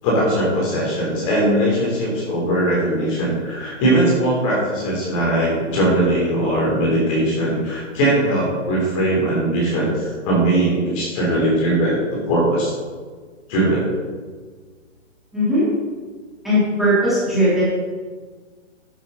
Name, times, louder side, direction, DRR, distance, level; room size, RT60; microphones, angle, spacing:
voice 1, 0.0-12.0 12.2-12.7 13.5-13.9, right 1 dB, 25° left, -4 dB, 3.6 m, -20 dB
voice 2, 15.3-15.6 16.4-17.6, equal, ahead, -13 dB, 3.4 m, -18 dB
12.0 x 8.5 x 4.0 m, 1.5 s
hypercardioid pair, 160°, 37 cm